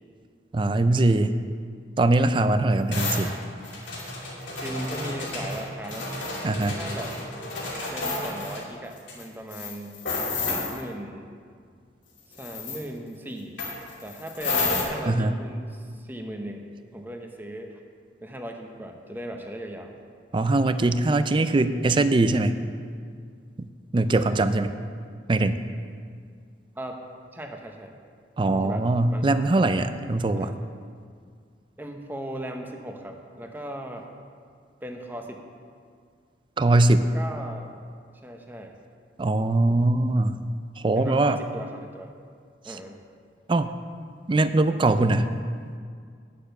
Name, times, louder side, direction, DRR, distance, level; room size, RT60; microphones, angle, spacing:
voice 1, 0.5-1.3 2.0-3.3 6.4-6.8 15.1-15.4 20.3-22.6 23.9-24.7 25.3-25.6 28.4-30.5 36.6-37.0 39.2-40.4 40.8-41.4 43.5-43.7 44.3-45.3, right 2 dB, 25° right, 11 dB, 0.4 m, -21 dB
sound 1, 2.9-8.6 9.1-9.2 9.5-10.8 12.3-12.8 13.6-14.8, left 3 dB, 80° left, 2.7 m, -31 dB
voice 2, 4.6-6.1 6.7-7.2 7.9-10.0 10.5-11.3 12.3-13.6 14.0-17.8 18.2-19.9 26.8-27.0 27.3-27.9 28.5-29.3 30.4-30.6 31.8-34.1 34.8-35.4 36.8-37.7 38.2-38.7 41.0-42.1 42.6-43.0, right 1 dB, 10° right, 3 dB, 0.8 m, -38 dB
9.6 x 6.8 x 6.7 m, 2.1 s
head